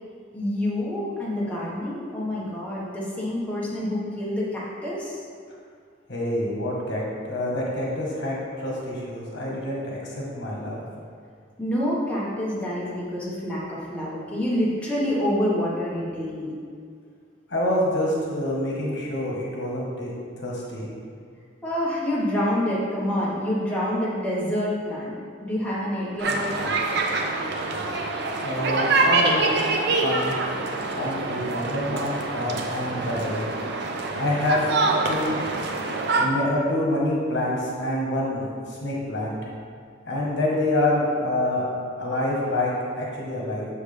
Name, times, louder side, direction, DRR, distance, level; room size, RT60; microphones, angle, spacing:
voice 1, 0.3-5.2 11.6-16.5 21.6-26.7, left 1 dB, 5° left, -7 dB, 1.5 m, -27 dB
voice 2, 6.1-10.8 17.5-20.9 28.4-29.5 30.0-30.3 30.9-33.4 34.1-34.7 35.1-35.4 36.2-39.4 40.0-41.6 42.0-43.7, left 1 dB, 65° left, -4 dB, 1.4 m, -27 dB
Ambiente - niños jugando, 26.2-36.3, right 3 dB, 60° right, 0.7 m, -25 dB
7.0 x 6.4 x 3.4 m, 2.1 s
head